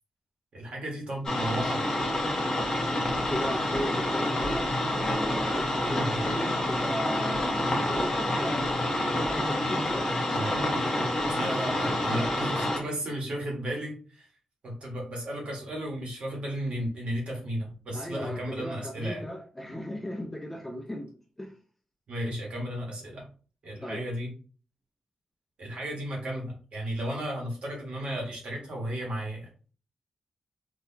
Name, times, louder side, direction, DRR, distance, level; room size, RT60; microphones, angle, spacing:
voice 1, 0.5-1.8 5.9-6.2 10.3-10.6 11.3-14.3 14.6-19.2 22.1-23.3 23.6-24.3 25.6-29.5, right 1 dB, 55° right, -1 dB, 1.4 m, -34 dB
sound 1, 1.2-12.8, left 1 dB, 25° left, 0.9 m, -28 dB
voice 2, 3.3-8.7 9.2-10.1 17.9-21.1 21.4-21.5 23.8-24.0, equal, 5° left, 3 dB, 0.4 m, -36 dB
3.8 x 2.7 x 2.8 m, 0.39 s
wide cardioid pair, 180°, 2 cm